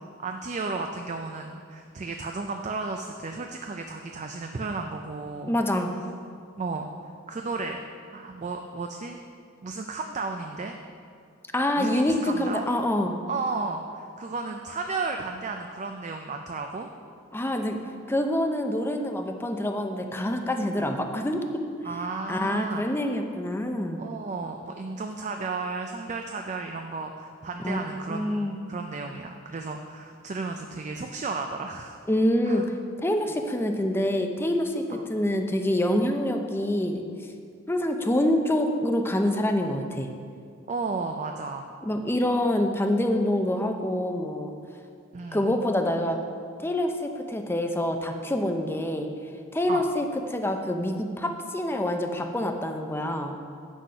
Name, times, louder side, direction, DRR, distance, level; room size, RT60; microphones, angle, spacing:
voice 1, 0.2-5.5 6.6-6.9 7.3-7.8 8.1-9.2 9.6-10.7 11.8-12.7 13.3-16.9 21.8-22.8 24.0-32.0 32.4-32.6 34.9-35.0 40.7-41.7 45.1-45.6 49.7-49.8, right 3 dB, 35° right, 4 dB, 0.4 m, -33 dB
voice 2, 5.5-5.9 11.5-13.2 17.3-17.8 18.1-21.6 22.3-24.0 27.6-27.8 28.1-28.6 32.1-32.6 33.0-37.0 37.7-40.1 41.8-44.5 45.3-46.2 46.6-49.1 49.5-53.4, left 1 dB, 10° left, 4 dB, 0.6 m, -26 dB
8.0 x 6.3 x 5.5 m, 2.3 s
head